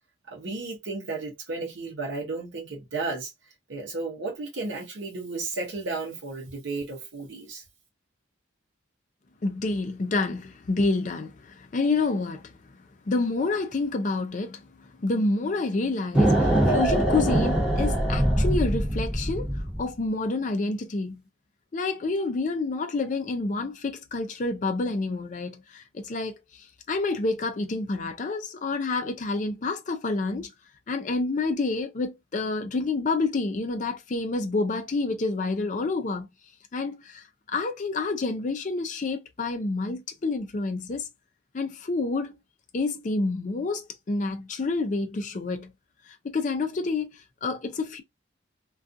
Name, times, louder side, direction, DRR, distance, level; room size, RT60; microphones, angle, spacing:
voice 1, 0.3-3.3 3.7-7.6, right 3 dB, 70° right, 0.7 m, -33 dB
voice 2, 9.4-21.2 21.7-30.5 30.9-36.3 36.7-41.1 41.5-42.4 42.7-45.7 46.1-48.0, left 3 dB, 40° left, 0.4 m, -28 dB
sound 1, 16.1-19.9, right 1 dB, 5° right, 1.0 m, -23 dB
2.4 x 2.3 x 2.5 m
head